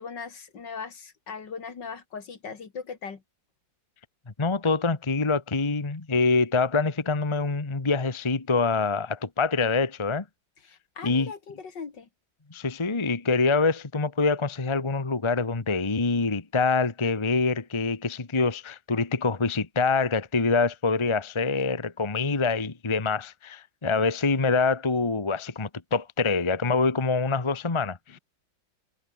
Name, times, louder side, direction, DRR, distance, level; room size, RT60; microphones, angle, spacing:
voice 1, 0.0-3.2 10.6-12.1 28.1-28.2, left 5 dB, 60° left, 2.9 m, -39 dB
voice 2, 4.4-10.2 11.0-11.3 12.5-28.2, left 4 dB, 15° left, 1.2 m, -25 dB
omnidirectional pair, 2.1 m